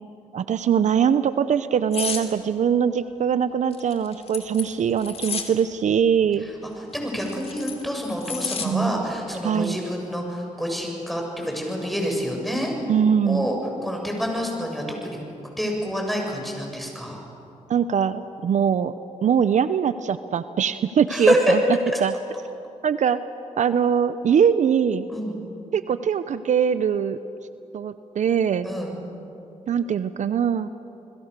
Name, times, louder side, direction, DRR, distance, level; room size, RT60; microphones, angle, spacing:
voice 1, 0.3-6.5 8.6-9.1 9.4-9.8 12.9-13.5 17.7-18.9 19.2-21.6 22.0-22.1 22.8-23.2 23.6-25.1 25.7-27.2 27.7-28.7 29.7-30.7, right 7 dB, 65° right, 12 dB, 0.7 m, -22 dB
sound 1, 1.9-2.3 3.7-5.5 6.9-8.7 9.1-9.3, left 6 dB, 50° left, 2.8 m, -31 dB
voice 2, 6.9-12.7 13.3-13.6 13.8-15.2 15.6-17.2 21.1-21.4 25.1-25.4 28.6-28.9, equal, ahead, 0 dB, 7.2 m, -27 dB
29.5 x 21.0 x 6.8 m, 2.8 s
cardioid pair, 75°, 13 cm